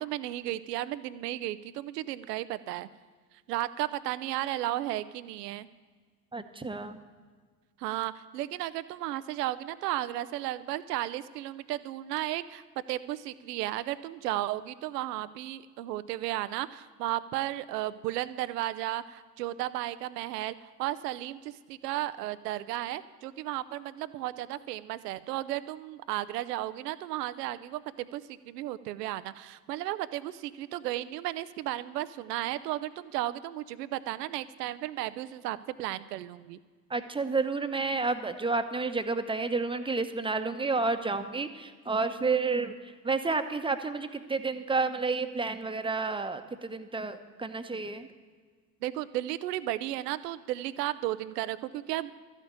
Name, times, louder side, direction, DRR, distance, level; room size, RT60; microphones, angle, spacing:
voice 1, 0.0-2.9 3.5-5.7 7.8-12.6 12.9-36.6 48.8-52.1, right 14 dB, 75° right, 15 dB, 0.6 m, -34 dB
voice 2, 6.3-7.0 36.9-48.1, right 4 dB, 10° right, 8 dB, 0.9 m, -30 dB
13.0 x 6.6 x 8.8 m, 1.5 s
figure-of-eight pair, 65°, 49 cm